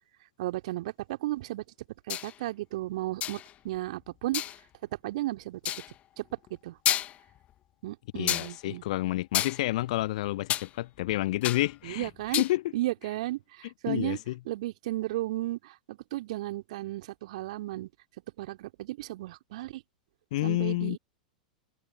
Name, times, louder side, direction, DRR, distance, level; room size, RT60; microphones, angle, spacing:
voice 1, 0.4-1.6 2.1-4.4 5.0-5.6 6.2-6.3 6.6-6.8 7.8-8.8 11.8-12.4 12.7-14.2 14.5-17.9 18.4-19.8 20.4-21.0, right 16 dB, 55° right, 3.2 m, -34 dB
Metallic Hits Various, 2.1-2.3 3.2-3.5 4.3-4.6 5.6-5.9 6.5-6.6 6.8-7.4 8.3-8.5 9.3-10.7 11.0-11.7 12.0-12.5, left 12 dB, 30° left, 1.5 m, -30 dB
voice 2, 8.1-12.1 12.4-12.6 13.9-14.3 20.3-21.0, left 16 dB, 55° left, 0.6 m, -29 dB
figure-of-eight pair, 95°, 5 cm